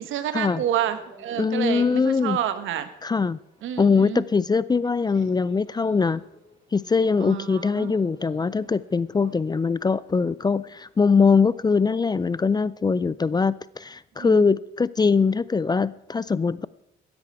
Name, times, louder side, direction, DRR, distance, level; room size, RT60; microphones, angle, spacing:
voice 1, 0.0-2.9 3.6-4.2 7.2-8.0 14.2-14.4, right 10 dB, 85° right, 1.2 m, -29 dB
sound 1, 0.6-12.6, right 1 dB, 20° right, 6.7 m, -52 dB
voice 2, 1.4-2.4 3.0-3.4 3.8-6.2 6.7-16.7, left 5 dB, 20° left, 0.4 m, -22 dB
15.5 x 10.5 x 4.7 m
cardioid pair, 90°, 20 cm